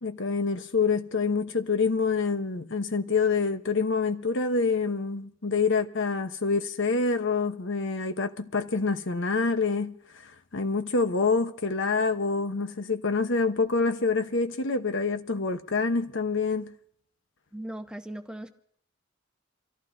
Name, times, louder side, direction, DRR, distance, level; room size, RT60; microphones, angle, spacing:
voice 1, 0.0-9.9 10.5-16.7, left 4 dB, 65° left, 1.1 m, -26 dB
voice 2, 17.5-18.5, right 1 dB, 5° right, 1.0 m, -38 dB
27.5 x 15.0 x 2.7 m
head